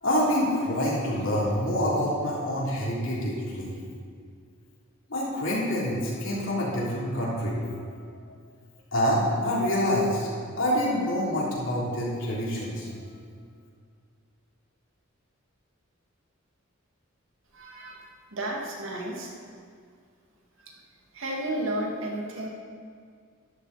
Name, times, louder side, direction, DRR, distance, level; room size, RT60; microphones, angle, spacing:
voice 1, 0.0-3.7 5.1-7.6 7.9-8.0 8.9-10.3 10.6-12.9, equal, 70° left, -6 dB, 3.4 m, -26 dB
voice 2, 17.5-19.3 21.1-22.5, right 1 dB, 75° right, -1 dB, 2.2 m, -32 dB
13.0 x 11.0 x 4.2 m, 2.1 s
head